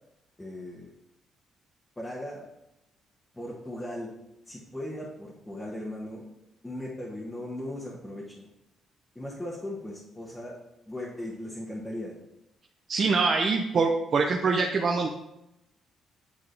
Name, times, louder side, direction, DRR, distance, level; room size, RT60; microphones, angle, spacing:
voice 1, 0.4-0.9 2.0-2.5 3.3-4.1 4.5-6.3 6.6-8.5 9.1-10.6 10.9-12.2, left 1 dB, 10° left, -5 dB, 1.3 m, -38 dB
voice 2, 12.9-15.1, right 4 dB, 50° right, 2 dB, 0.6 m, -24 dB
9.0 x 3.7 x 3.3 m, 0.87 s
cardioid pair, 90°, 0 cm